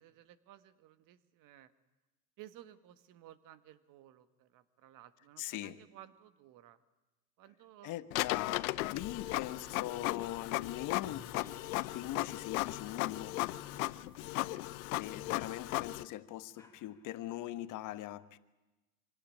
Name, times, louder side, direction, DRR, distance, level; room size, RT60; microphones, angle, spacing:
voice 1, 0.0-1.7 2.4-6.8 7.4-9.4 13.3-13.6 14.6-14.9, right 13 dB, 45° right, 1.6 m, -57 dB
voice 2, 5.4-5.8 7.8-11.3 11.9-13.4 14.9-18.4, left 14 dB, 45° left, 1.2 m, -41 dB
Printer, 8.1-16.0, left 20 dB, 70° left, 0.8 m, -36 dB
sound 1, 9.7-15.3, equal, 10° right, 4.1 m, -70 dB
sound 2, 11.1-17.4, left 3 dB, 5° left, 3.3 m, -59 dB
25.5 x 17.0 x 10.0 m
supercardioid pair, 115°, 44 cm